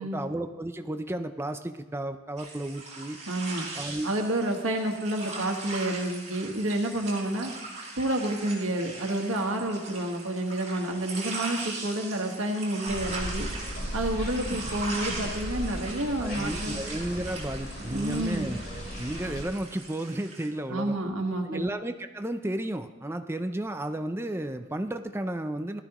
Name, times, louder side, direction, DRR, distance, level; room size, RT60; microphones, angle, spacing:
voice 1, 0.0-3.2 3.8-4.2 16.2-21.0 21.4-25.8, right 1 dB, 10° right, 8 dB, 0.5 m, -33 dB
sound 1, 2.4-20.5, right 3 dB, 35° right, 4.0 m, -40 dB
voice 2, 3.3-3.7 4.0-7.5 8.0-13.5 13.9-16.8 17.9-18.5 20.7-21.6, right 1 dB, 85° right, 2 dB, 1.6 m, -29 dB
sound 2, 12.9-19.4, equal, 50° left, 3.9 m, -37 dB
17.5 x 13.0 x 3.0 m, 1.2 s
head